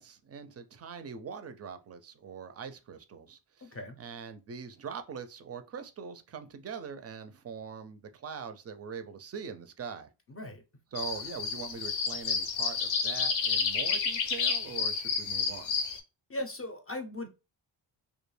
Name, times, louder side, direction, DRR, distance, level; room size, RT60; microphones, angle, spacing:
voice 1, 0.0-3.7 4.0-10.1 10.9-15.7, right 6 dB, 35° right, 0.4 m, -42 dB
voice 2, 3.6-4.0 10.3-10.6 16.3-17.3, left 1 dB, 30° left, 0.5 m, -38 dB
sound 1, 11.0-16.0, left 5 dB, 90° left, 0.6 m, -30 dB
2.3 x 2.1 x 3.1 m
cardioid pair, 95°, 45 cm